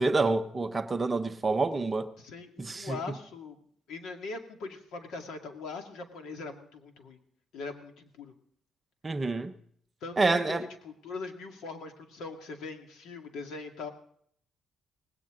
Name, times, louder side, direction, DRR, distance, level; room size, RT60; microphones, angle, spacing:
voice 1, 0.0-2.1 2.6-3.0 9.0-9.5 10.2-10.6, right 3 dB, 20° right, 0.7 m, -27 dB
voice 2, 2.2-3.6 3.9-7.2 7.5-8.3 10.0-13.9, left 4 dB, 75° left, 2.3 m, -41 dB
18.5 x 17.0 x 3.8 m
cardioid pair, 175°, 0 cm